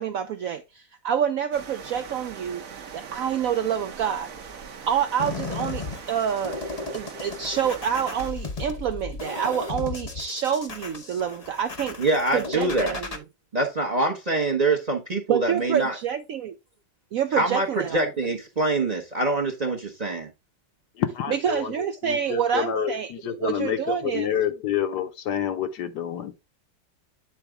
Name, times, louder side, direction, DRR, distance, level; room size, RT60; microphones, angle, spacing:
voice 1, 0.0-4.3 4.9-6.6 6.9-12.0 12.3-13.1 15.3-16.6 17.1-18.0 21.3-24.3, right 8 dB, 70° right, 0.8 m, -27 dB
sound 1, 1.5-8.3, right 6 dB, 55° right, 1.2 m, -41 dB
sound 2, 5.2-13.2, left 3 dB, 35° left, 0.6 m, -35 dB
voice 2, 12.0-13.0 13.5-16.0 17.3-20.3, right 2 dB, 30° right, 0.8 m, -25 dB
voice 3, 21.0-21.7 22.0-26.4, left 9 dB, 75° left, 1.4 m, -28 dB
9.0 x 4.0 x 3.5 m
omnidirectional pair, 1.9 m